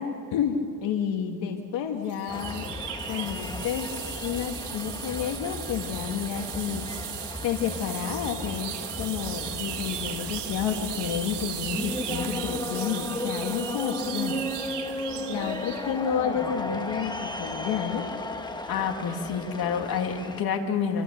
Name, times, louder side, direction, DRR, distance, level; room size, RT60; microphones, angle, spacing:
voice 1, 0.0-2.7 3.1-3.9 4.2-6.9 7.4-14.5 15.3-18.2, left 8 dB, 85° left, 4 dB, 1.6 m, -30 dB
sound 1, 2.1-16.0, right 10 dB, 75° right, 1.6 m, -37 dB
sound 2, 2.3-20.4, left 2 dB, 10° left, 1.2 m, -35 dB
voice 2, 18.7-21.0, left 6 dB, 55° left, 3 dB, 2.5 m, -28 dB
25.5 x 25.0 x 6.6 m, 2.4 s
cardioid pair, 145°, 42 cm